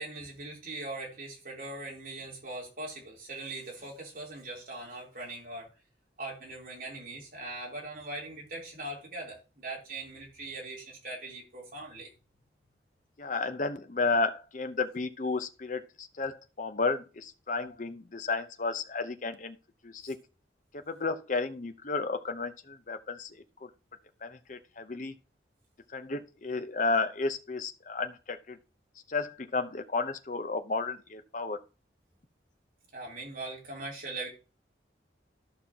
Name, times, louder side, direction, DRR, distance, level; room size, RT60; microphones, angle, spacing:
voice 1, 0.0-5.7 6.2-12.1 32.9-34.3, right 2 dB, 50° right, 3.5 m, -41 dB
voice 2, 13.2-19.6 19.8-20.2 20.7-23.7 24.2-25.2 25.9-28.6 29.1-31.6, left 3 dB, 45° left, 0.8 m, -32 dB
13.5 x 5.7 x 2.9 m
head